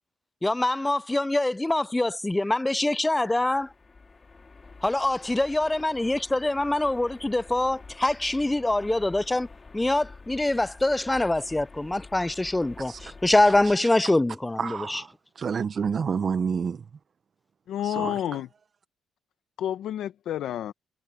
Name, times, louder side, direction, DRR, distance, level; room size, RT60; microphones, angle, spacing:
voice 1, 0.4-3.7 4.8-9.5 9.7-15.0, left 2 dB, 10° left, 0.4 m, -24 dB
sound 1, 3.1-13.8, left 4 dB, 30° left, 2.5 m, -48 dB
voice 2, 13.4-13.7 14.6-16.8 17.8-18.1, right 6 dB, 45° right, 0.8 m, -29 dB
voice 3, 17.7-18.5 19.6-20.7, left 11 dB, 75° left, 0.8 m, -29 dB
cardioid pair, 90°, 0 cm